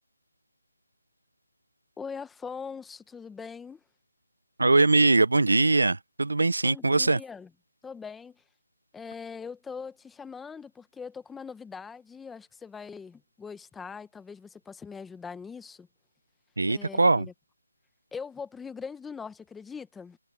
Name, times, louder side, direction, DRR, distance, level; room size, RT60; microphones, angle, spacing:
voice 1, 2.0-3.8 6.6-7.5 7.8-8.4 8.9-15.9 16.7-17.3 18.1-20.2, left 5 dB, 5° left, 0.9 m, -41 dB
voice 2, 4.6-7.2 16.6-17.3, right 3 dB, 85° right, 0.5 m, -22 dB
figure-of-eight pair, 170°, 0 cm